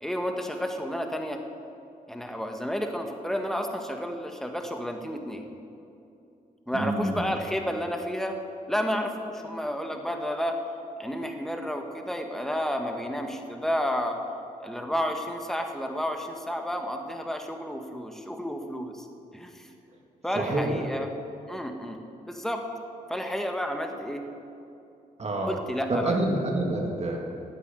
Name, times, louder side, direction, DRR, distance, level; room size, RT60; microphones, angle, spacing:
voice 1, 0.0-1.4 2.1-5.4 6.7-8.4 8.7-10.6 11.0-14.2 14.6-19.1 19.3-19.7 20.2-21.1 21.5-22.6 23.1-24.2 25.5-26.2, equal, 5° left, 4 dB, 1.5 m, -31 dB
voice 2, 6.7-7.2 20.4-20.9 25.2-25.6 25.9-27.3, right 2 dB, 45° right, 0 dB, 2.0 m, -27 dB
11.5 x 8.2 x 9.7 m, 2.7 s
cardioid pair, 80°, 15 cm